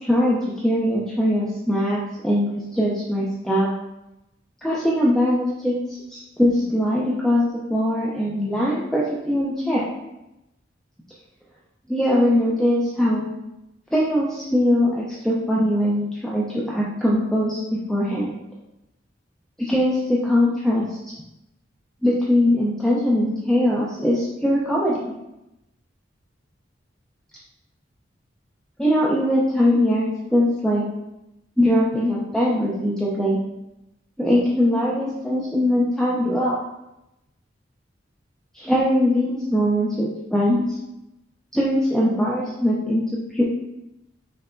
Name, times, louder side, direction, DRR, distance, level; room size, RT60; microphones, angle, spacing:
voice 1, 0.1-0.4 0.6-3.7 4.6-5.7 6.1-7.4 7.7-9.8 11.9-13.3 13.9-18.3 19.6-20.9 22.0-25.0 28.8-30.8 31.6-33.4 34.2-36.6 38.5-40.8 41.5-43.0 43.3-43.4, left 1 dB, 5° left, -6 dB, 0.5 m, -21 dB
5.4 x 3.3 x 2.5 m, 0.90 s
head